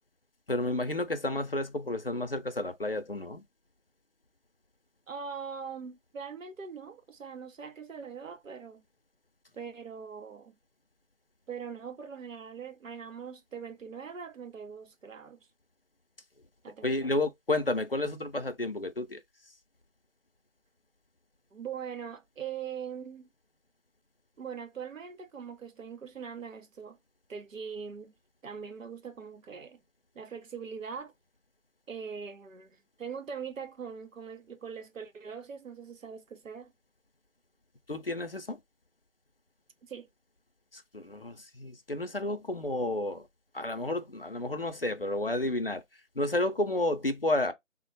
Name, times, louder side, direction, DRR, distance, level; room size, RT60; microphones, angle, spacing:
voice 1, 0.5-3.4 16.8-19.2 37.9-38.6 40.7-43.3 43.5-45.8 46.2-47.5, left 2 dB, 50° left, 0.5 m, -31 dB
voice 2, 5.1-8.8 9.6-10.5 11.5-15.4 16.6-17.1 21.5-23.3 24.4-27.0 27.3-28.1 28.4-29.8 30.1-31.1 31.9-36.7 39.8-40.1, right 6 dB, 90° right, 0.8 m, -42 dB
3.6 x 2.2 x 2.6 m
figure-of-eight pair, 175°, 38 cm